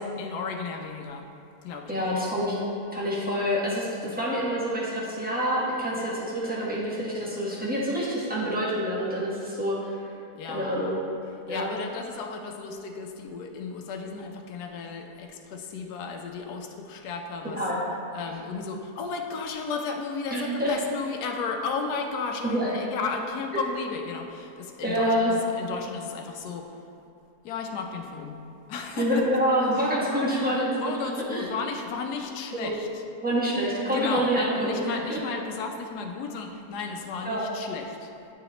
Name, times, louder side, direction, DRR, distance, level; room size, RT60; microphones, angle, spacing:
voice 1, 0.2-1.3 1.6-2.1 10.3-10.7 11.5-17.6 18.1-26.8 27.4-28.4 28.7-29.2 29.7-29.9 30.8-33.0 33.9-38.1, left 5 dB, 80° left, 3 dB, 1.2 m, -34 dB
voice 2, 1.9-2.6 2.9-10.0 10.5-11.0 11.5-11.7 17.6-17.8 20.3-20.7 22.4-22.7 24.8-25.3 29.0-30.7 31.3-31.4 32.6-32.8 33.2-35.2 37.2-37.4, equal, 5° right, -7 dB, 1.0 m, -27 dB
9.1 x 4.0 x 3.0 m, 2.6 s
omnidirectional pair, 1.7 m